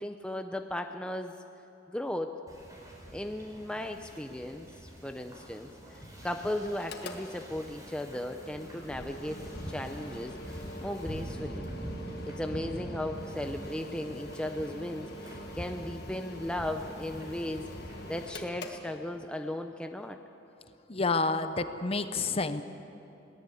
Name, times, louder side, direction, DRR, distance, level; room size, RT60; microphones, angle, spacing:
voice 1, 0.0-1.4 1.9-2.4 3.1-11.7 12.2-20.2, left 1 dB, 5° left, 5 dB, 0.6 m, -36 dB
Wind / Ocean, 2.5-18.3, equal, 20° right, 4.4 m, -44 dB
Mechanical fan, 6.7-19.5, left 1 dB, 55° left, 1.7 m, -45 dB
voice 2, 20.9-22.6, left 3 dB, 30° left, 10 dB, 0.8 m, -29 dB
21.5 x 17.5 x 8.4 m, 2.9 s
head